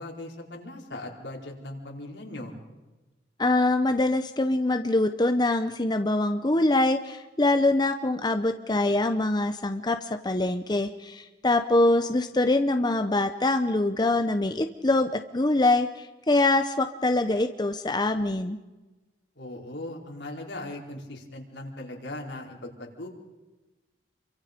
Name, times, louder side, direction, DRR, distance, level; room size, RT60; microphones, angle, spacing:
voice 1, 0.0-2.5 19.4-23.1, left 1 dB, 80° left, 0 dB, 4.4 m, -39 dB
voice 2, 3.4-18.6, left 2 dB, 25° left, 7 dB, 0.8 m, -24 dB
29.0 x 24.0 x 5.2 m, 1.1 s
head